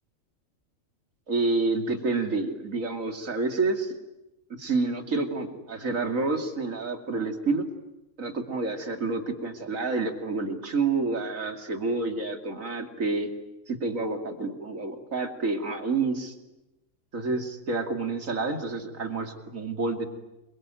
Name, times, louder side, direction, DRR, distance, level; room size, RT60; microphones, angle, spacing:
voice 1, 1.3-3.9 4.6-7.6 8.2-13.3 13.7-16.3 17.1-20.1, right 3 dB, 75° right, 5 dB, 3.0 m, -28 dB
27.5 x 23.0 x 9.2 m, 0.97 s
omnidirectional pair, 1.4 m